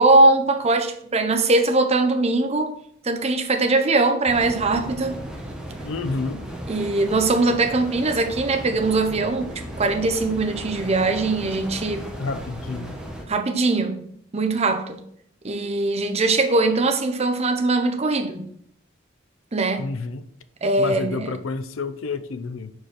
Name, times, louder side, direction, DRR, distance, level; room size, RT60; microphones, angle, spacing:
voice 1, 0.0-2.7 3.0-5.2 6.7-12.1 13.3-14.0 14.3-15.0 15.4-18.4 19.5-19.9 20.6-21.3, right 2 dB, 30° right, 0.7 m, -21 dB
sound 1, 4.3-13.2, equal, 5° right, 1.0 m, -35 dB
voice 2, 5.8-6.4 11.4-11.5 12.2-13.0 19.8-20.3 20.8-22.7, left 3 dB, 85° left, 0.5 m, -29 dB
4.9 x 4.6 x 5.9 m
head